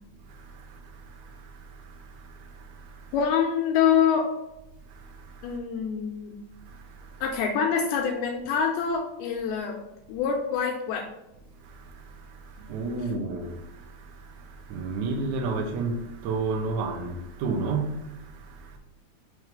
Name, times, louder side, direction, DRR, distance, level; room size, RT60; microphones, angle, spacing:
voice 1, 0.3-3.1 4.9-5.6 6.6-7.2 11.6-18.8, right 3 dB, 80° right, 1.6 m, -33 dB
voice 2, 3.1-4.3 5.4-6.3 7.2-9.8 10.1-11.1, left 7 dB, 85° left, 2.6 m, -25 dB
6.2 x 3.2 x 5.2 m
omnidirectional pair, 4.5 m